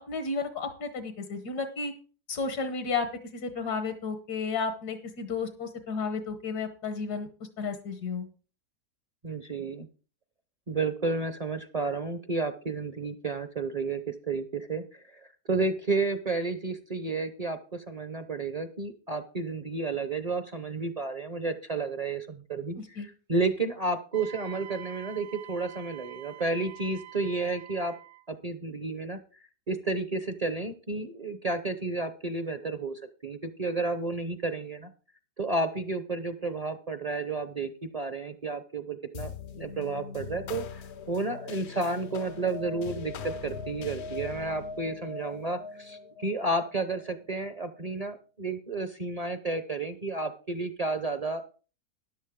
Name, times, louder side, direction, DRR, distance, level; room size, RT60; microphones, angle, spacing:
voice 1, 0.1-1.9 2.3-3.1 3.3-7.3 7.6-8.3 22.8-23.1, left 4 dB, 75° left, 8 dB, 1.7 m, -32 dB
voice 2, 9.2-9.9 10.7-15.2 15.5-27.9 28.3-29.2 29.7-34.9 35.4-51.6, right 3 dB, 35° right, 9 dB, 0.6 m, -32 dB
Wind instrument woodwind instrument, 24.1-28.3, right 14 dB, 80° right, 1.3 m, -46 dB
sound 1, 39.1-47.9, left 5 dB, 60° left, 0.8 m, -41 dB
13.5 x 10.5 x 3.7 m, 0.36 s
omnidirectional pair, 1.7 m